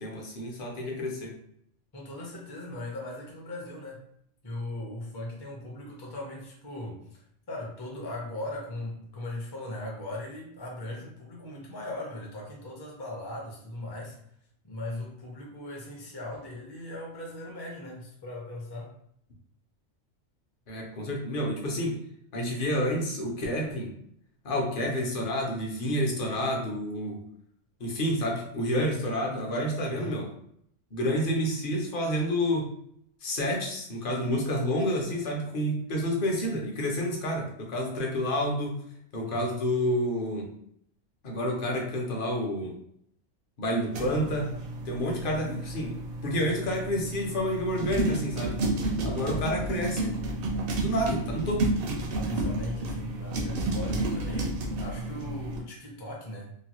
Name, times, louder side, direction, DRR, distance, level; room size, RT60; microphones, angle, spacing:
voice 1, 0.0-1.3 20.7-22.0 22.3-23.9 24.4-27.2 27.8-30.3 30.9-32.7 33.2-38.8 39.1-40.5 41.2-42.7 43.6-44.5 44.9-45.9 46.2-48.6 49.0-50.2 50.7-51.7, equal, 50° left, -1 dB, 0.8 m, -29 dB
voice 2, 1.9-4.0 4.4-7.2 7.5-14.2 14.6-18.9 29.9-30.2 39.2-39.6 49.0-49.4 52.1-56.6, left 1 dB, 30° left, -2 dB, 0.5 m, -39 dB
sound 1, 43.9-55.6, right 2 dB, 60° right, 0.6 m, -31 dB
3.0 x 2.2 x 2.9 m, 0.70 s
omnidirectional pair, 1.3 m